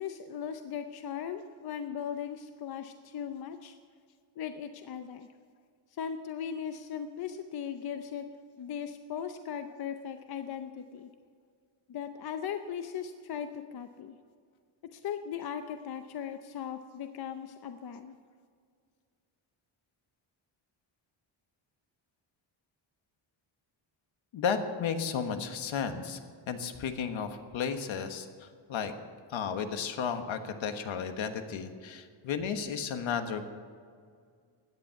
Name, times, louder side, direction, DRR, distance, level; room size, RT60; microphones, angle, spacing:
voice 1, 0.0-3.8 4.4-5.3 5.9-8.3 8.6-11.1 11.9-14.2 14.9-18.1, left 8 dB, 50° left, 8 dB, 0.7 m, -38 dB
voice 2, 24.3-26.2 26.5-28.9 29.3-33.5, left 6 dB, 70° left, 7 dB, 1.4 m, -33 dB
17.0 x 11.0 x 5.8 m, 2.1 s
wide cardioid pair, 175°, 49 cm